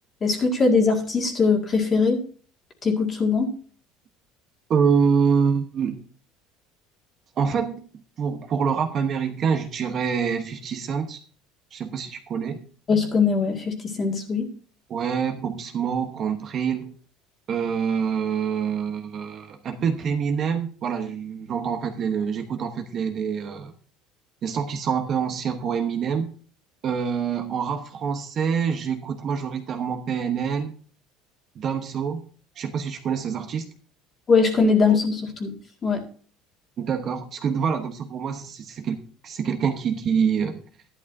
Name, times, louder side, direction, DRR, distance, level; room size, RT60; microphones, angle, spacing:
voice 1, 0.2-2.2 2.8-3.5 12.9-14.5 34.3-35.5 35.8-36.0, left 4 dB, 25° left, 2 dB, 2.0 m, -21 dB
voice 2, 4.7-6.0 7.4-11.2 11.7-12.7 14.9-16.9 17.5-23.7 24.4-26.3 26.8-30.7 31.5-32.2 32.6-33.7 34.9-35.0 36.8-39.0 39.2-40.6, right 6 dB, 35° right, 5 dB, 1.0 m, -26 dB
13.0 x 11.0 x 2.7 m, 0.42 s
cardioid pair, 160°, 0 cm